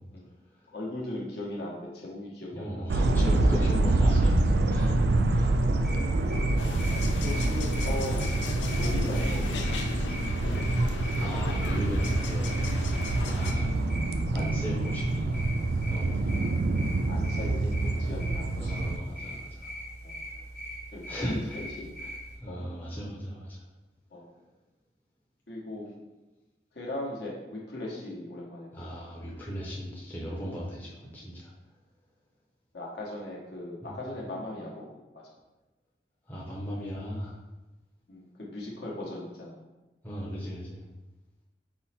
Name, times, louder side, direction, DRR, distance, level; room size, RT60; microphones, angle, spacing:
voice 1, 0.7-3.8 5.3-5.5 7.2-8.2 8.8-9.8 10.4-10.7 13.2-13.5 17.0-19.2 20.0-20.2 20.9-21.9 22.5-22.6 22.9-23.0 24.1-24.3 25.5-25.9 26.7-28.9 32.7-35.2 38.1-39.6, left 1 dB, 65° left, -4 dB, 1.1 m, -39 dB
voice 2, 2.5-4.4 4.7-5.0 5.3-5.6 11.2-12.5 13.2-13.9 14.3-15.4 15.9-16.4 18.5-19.7 21.1-21.6 22.0-22.1 22.4-23.6 28.7-31.5 33.8-33.9 36.3-37.4 40.0-40.8, equal, 10° left, -6 dB, 0.6 m, -35 dB
sound 1, 2.9-19.0, right 2 dB, 60° right, 0.3 m, -26 dB
sound 2, 5.8-22.4, equal, 40° left, 1.2 m, -41 dB
sound 3, 6.6-13.5, left 2 dB, 85° left, 0.5 m, -35 dB
5.5 x 2.1 x 4.2 m, 1.1 s
head